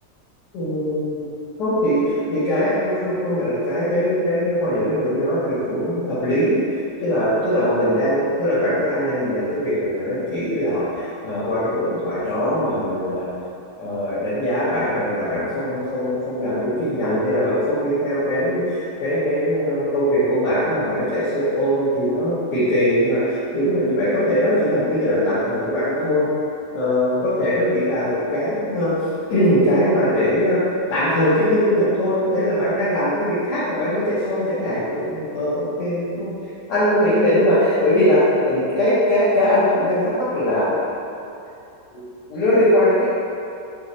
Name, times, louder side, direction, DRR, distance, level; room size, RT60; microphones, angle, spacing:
voice 1, 0.5-1.2 1.6-6.6 7.0-13.3 13.8-26.3 26.7-28.9 29.3-30.6 30.9-36.3 36.7-38.2 38.5-40.8 41.9-42.0 42.3-43.1, equal, 85° left, -11 dB, 1.4 m, -21 dB
4.0 x 2.2 x 4.0 m, 2.7 s
omnidirectional pair, 1.8 m